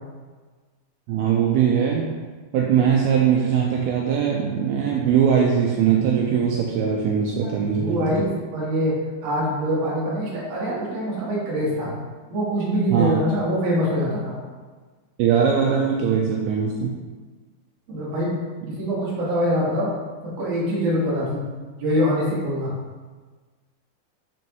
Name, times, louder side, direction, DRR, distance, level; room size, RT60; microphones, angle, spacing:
voice 1, 1.1-2.1 2.5-8.0 12.9-13.1 15.2-16.9, right 7 dB, 85° right, -1 dB, 2.2 m, -21 dB
voice 2, 7.4-11.9 12.3-14.4 17.9-18.4 18.7-19.9 20.2-21.4 21.8-22.7, equal, 50° right, -7 dB, 2.1 m, -24 dB
6.2 x 5.9 x 3.0 m, 1.4 s
omnidirectional pair, 4.9 m